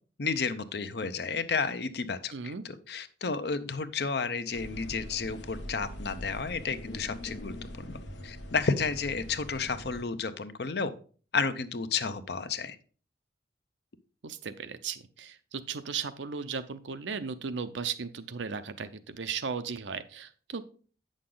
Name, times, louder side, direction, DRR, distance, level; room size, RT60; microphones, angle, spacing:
voice 1, 0.2-10.9 11.3-12.8, left 5 dB, 60° left, 11 dB, 0.6 m, -32 dB
voice 2, 2.3-2.6 14.2-20.6, right 6 dB, 85° right, 11 dB, 0.7 m, -36 dB
sound 1, 4.5-10.0, left 1 dB, 75° left, 1.1 m, -43 dB
8.6 x 6.4 x 3.8 m, 0.40 s
head